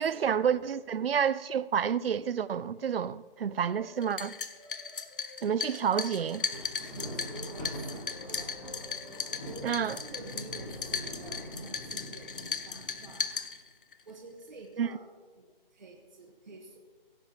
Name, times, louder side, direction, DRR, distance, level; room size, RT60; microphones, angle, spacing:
voice 1, 0.0-4.4 5.4-6.4 9.6-10.0 14.8-14.9, right 8 dB, 75° right, 0.5 m, -29 dB
sound 1, 1.9-3.0 3.3-11.4, left 1 dB, 5° left, 1.7 m, -57 dB
sound 2, 4.0-14.0, left 5 dB, 60° left, 0.7 m, -37 dB
Thunder, 6.2-13.5, equal, 25° left, 3.8 m, -44 dB
voice 2, 6.8-8.5 8.9-9.1 9.4-13.2 14.1-15.0 15.3-15.4 15.7-16.8, right 3 dB, 50° right, 1.3 m, -48 dB
17.0 x 8.9 x 2.9 m
hypercardioid pair, 170°, 29 cm